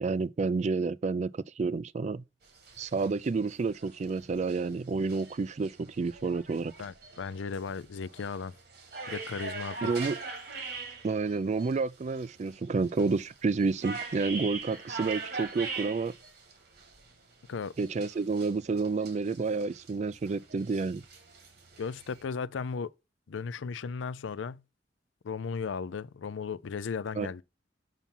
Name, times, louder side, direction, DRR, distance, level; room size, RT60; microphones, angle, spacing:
voice 1, 0.0-2.2 2.8-6.7 9.8-10.2 11.0-16.1 17.8-21.0 27.2-27.3, right 4 dB, 40° right, 0.3 m, -30 dB
sound 1, 2.4-17.2 17.4-22.2, right 4 dB, 60° right, 2.0 m, -43 dB
voice 2, 6.8-8.5 9.1-9.8 17.5-17.7 21.8-22.9 23.3-24.6 25.2-27.4, left 5 dB, 90° left, 0.4 m, -36 dB
5.9 x 5.8 x 5.4 m
head